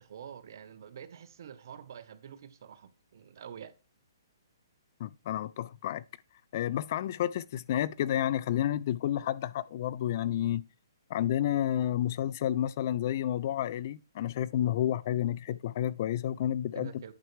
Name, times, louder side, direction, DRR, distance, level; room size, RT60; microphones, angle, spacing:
voice 1, 0.0-3.7 16.7-17.1, right 8 dB, 55° right, 1.0 m, -47 dB
voice 2, 5.0-6.0 6.5-10.6 11.1-16.9, left 11 dB, 40° left, 0.4 m, -30 dB
9.3 x 5.9 x 3.2 m
hypercardioid pair, 160°, 2 cm